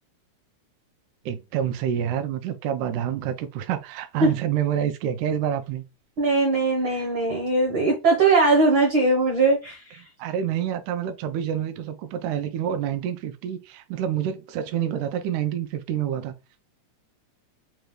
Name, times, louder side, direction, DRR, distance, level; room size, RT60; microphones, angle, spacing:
voice 1, 1.3-5.8 6.9-7.1 10.2-16.3, right 9 dB, 85° right, 2.0 m, -27 dB
voice 2, 6.2-10.0, right 3 dB, 65° right, 1.2 m, -20 dB
5.3 x 2.3 x 3.1 m
omnidirectional pair, 3.4 m